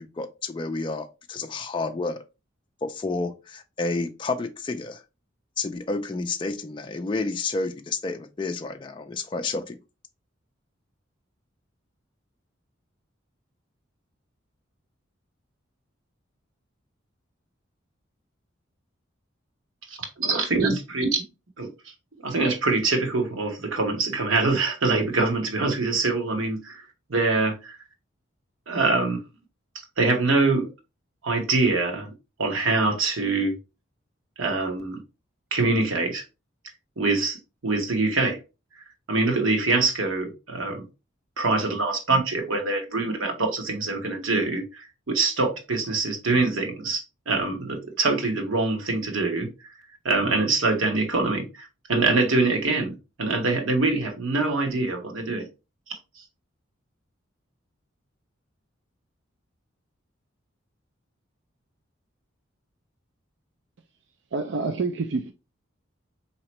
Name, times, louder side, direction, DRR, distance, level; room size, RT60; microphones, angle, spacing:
voice 1, 0.0-2.2 2.8-5.0 5.6-9.8, left 3 dB, 25° left, 0.3 m, -30 dB
voice 2, 19.9-21.1 21.6-21.7 22.2-26.8 27.1-27.8 28.7-29.2 30.0-30.7 31.2-32.1 32.4-33.5 34.4-35.0 35.5-36.2 37.0-37.4 37.6-38.4 39.1-40.8 41.4-49.5 50.0-55.4 56.2-56.3, right 3 dB, 90° right, 1.1 m, -24 dB
voice 3, 64.3-65.3, right 3 dB, 60° right, 0.4 m, -27 dB
4.3 x 2.8 x 3.0 m
head